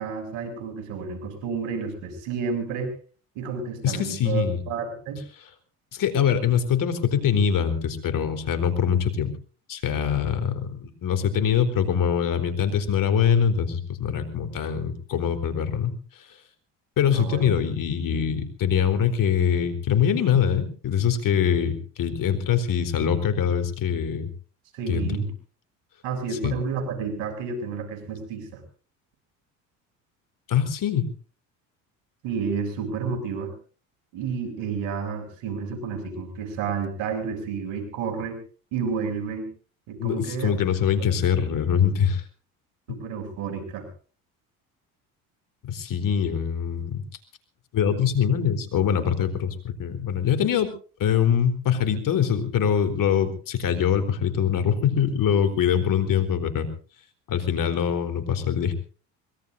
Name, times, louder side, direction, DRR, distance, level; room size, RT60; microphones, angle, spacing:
voice 1, 0.0-2.9 3.4-5.2 17.1-17.4 24.7-25.3 26.0-28.6 32.2-33.5 34.1-38.4 38.7-39.5 39.9-40.5 42.9-43.9, right 5 dB, 75° right, 5 dB, 7.6 m, -30 dB
voice 2, 3.8-4.6 5.9-9.3 9.7-15.9 17.0-24.3 24.9-25.1 26.4-26.5 30.5-31.1 40.0-42.2 42.9-43.0 45.6-47.0 47.7-50.7 51.0-56.7 57.3-58.7, left 8 dB, 55° left, 8 dB, 4.0 m, -23 dB
25.0 x 21.5 x 2.7 m, 0.40 s
hypercardioid pair, 70°, 39 cm